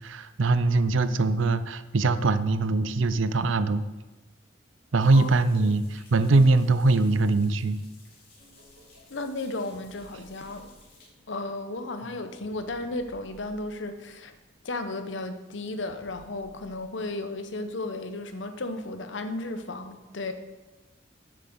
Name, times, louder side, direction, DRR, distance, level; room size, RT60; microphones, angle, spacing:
voice 1, 0.0-3.9 4.9-7.8, right 3 dB, 85° right, 13 dB, 0.6 m, -22 dB
sound 1, 5.0-11.1, left 3 dB, 50° left, 3.2 m, -57 dB
sound 2, 8.4-14.2 15.9-16.9, equal, 60° right, 2.6 m, -56 dB
voice 2, 9.1-10.7 11.3-14.3 14.6-20.3, left 2 dB, 75° left, 9 dB, 0.9 m, -34 dB
8.3 x 7.1 x 6.9 m, 1.1 s
head